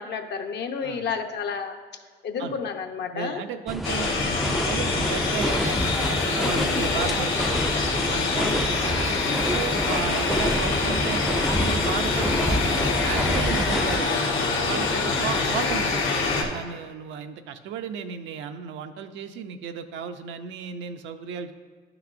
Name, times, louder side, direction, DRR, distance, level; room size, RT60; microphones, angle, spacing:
voice 1, 0.0-1.8 2.2-3.4 6.4-7.0 8.4-8.7 14.9-15.2, left 6 dB, 65° left, 5 dB, 0.8 m, -31 dB
voice 2, 3.1-7.6 8.1-14.2 14.7-21.5, right 7 dB, 80° right, 8 dB, 0.6 m, -34 dB
sound 1, 3.7-14.0, equal, ahead, 0.3 m, -28 dB
sound 2, 3.8-16.4, left 4 dB, 85° left, 1.3 m, -25 dB
11.5 x 5.9 x 2.6 m, 1.5 s
supercardioid pair, 70°, 19 cm